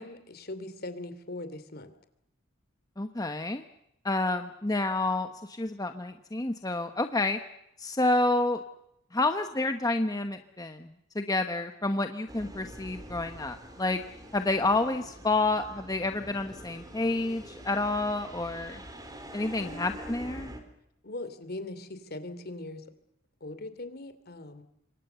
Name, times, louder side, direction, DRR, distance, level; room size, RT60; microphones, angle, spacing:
voice 1, 0.0-1.9 19.6-19.9 21.0-22.9 23.4-24.6, left 2 dB, 50° left, 11 dB, 2.8 m, -40 dB
voice 2, 3.0-3.6 4.0-7.4 7.8-8.6 9.1-10.9 11.1-14.0 14.3-18.8 19.3-20.5, left 2 dB, 20° left, 7 dB, 1.0 m, -29 dB
sound 1, 12.3-20.6, right 1 dB, 20° right, 3.7 m, -45 dB
27.0 x 23.0 x 6.9 m, 0.81 s
head